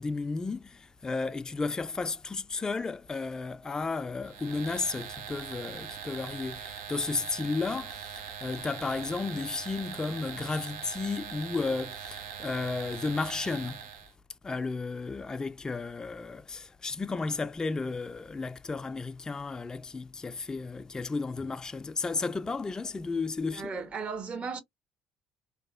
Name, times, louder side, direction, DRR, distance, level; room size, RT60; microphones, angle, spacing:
voice 1, 0.0-13.8 14.4-23.7, left 4 dB, 20° left, 0.3 m, -33 dB
sound 1, 4.2-14.1, right 7 dB, 80° right, 0.6 m, -42 dB
voice 2, 23.5-24.6, right 5 dB, 40° right, 0.9 m, -35 dB
2.8 x 2.1 x 2.3 m
supercardioid pair, 70°, 3 cm